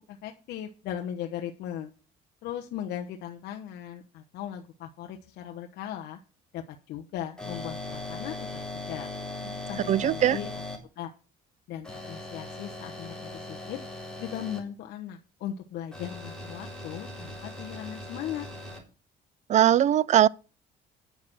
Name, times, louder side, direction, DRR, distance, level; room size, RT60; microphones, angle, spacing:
voice 1, 0.1-1.9 2.4-6.2 6.5-8.3 8.7-9.1 9.7-10.5 11.0-11.1 11.7-13.8 14.2-18.5, left 10 dB, 80° left, 1.1 m, -38 dB
sound 1, 7.4-10.8 11.8-14.6 15.9-18.8, left 2 dB, 5° left, 3.8 m, -39 dB
voice 2, 9.9-10.4 19.5-20.3, right 11 dB, 45° right, 0.5 m, -20 dB
9.4 x 6.6 x 6.1 m
cardioid pair, 110°, 17 cm